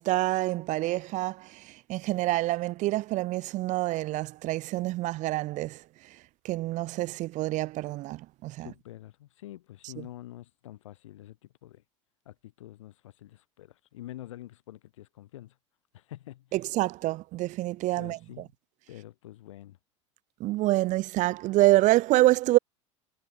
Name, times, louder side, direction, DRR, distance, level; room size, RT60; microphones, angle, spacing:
voice 1, 0.0-1.5 1.9-5.8 6.4-8.7 16.5-18.2 20.4-22.6, right 17 dB, 50° right, 1.2 m, -26 dB
voice 2, 8.6-11.8 12.3-15.5 15.9-16.5 18.0-18.5 18.9-19.8, left 14 dB, 75° left, 5.2 m, -46 dB
hypercardioid pair, 85°, 16 cm